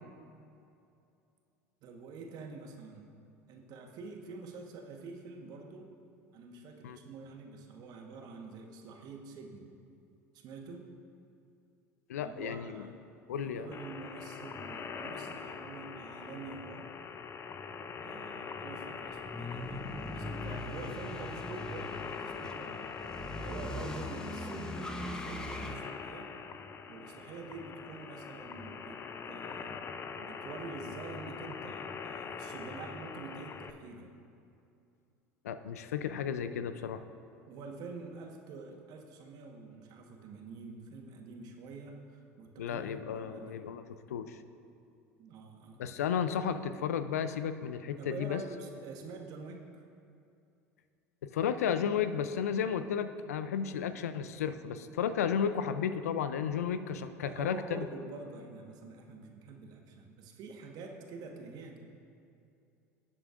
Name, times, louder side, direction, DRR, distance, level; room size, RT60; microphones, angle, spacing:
voice 1, 1.8-3.1 3.5-5.9 6.3-9.7 10.3-10.9 12.2-13.0 13.4-16.9 18.0-22.9 23.3-26.3 26.9-29.7 30.2-34.1 37.5-43.6 45.2-45.8 48.0-49.8 57.2-61.8, right 4 dB, 55° right, 2 dB, 1.3 m, -46 dB
voice 2, 12.1-12.8 13.3-13.7 35.4-37.0 42.6-44.4 45.8-48.4 51.2-57.9, left 8 dB, 80° left, 11 dB, 0.5 m, -33 dB
sound 1, 13.7-33.7, left 5 dB, 30° left, 0.5 m, -43 dB
sound 2, 19.1-25.8, left 1 dB, 10° left, 0.9 m, -41 dB
17.5 x 7.7 x 2.5 m, 2.6 s
hypercardioid pair, 75°, 8 cm